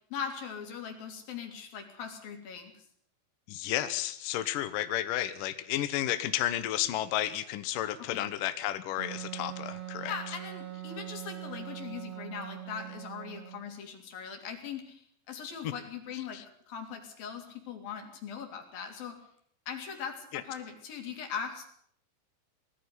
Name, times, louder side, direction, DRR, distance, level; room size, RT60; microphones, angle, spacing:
voice 1, 0.1-2.7 8.0-8.3 10.0-16.4 16.7-19.2 19.7-21.7, left 7 dB, 55° left, 4 dB, 4.7 m, -40 dB
voice 2, 3.5-10.1 15.6-15.7 16.3-16.4 20.3-20.4, left 13 dB, 75° left, 11 dB, 2.0 m, -32 dB
Wind instrument woodwind instrument, 9.0-13.6, right 14 dB, 50° right, 2.1 m, -42 dB
20.5 x 14.0 x 9.6 m, 0.65 s
omnidirectional pair, 5.1 m